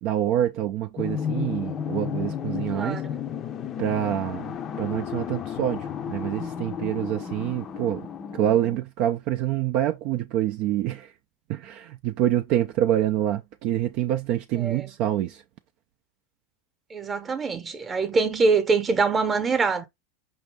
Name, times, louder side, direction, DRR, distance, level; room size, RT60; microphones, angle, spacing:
voice 1, 0.0-3.0 3.8-8.1 8.3-11.1 11.5-15.4, right 12 dB, 50° right, 0.4 m, -26 dB
sound 1, 1.0-8.8, left 8 dB, 30° left, 0.5 m, -33 dB
voice 2, 2.7-3.1 14.6-14.9 16.9-19.9, right 4 dB, 20° right, 0.9 m, -24 dB
5.2 x 2.6 x 3.4 m
supercardioid pair, 140°, 0 cm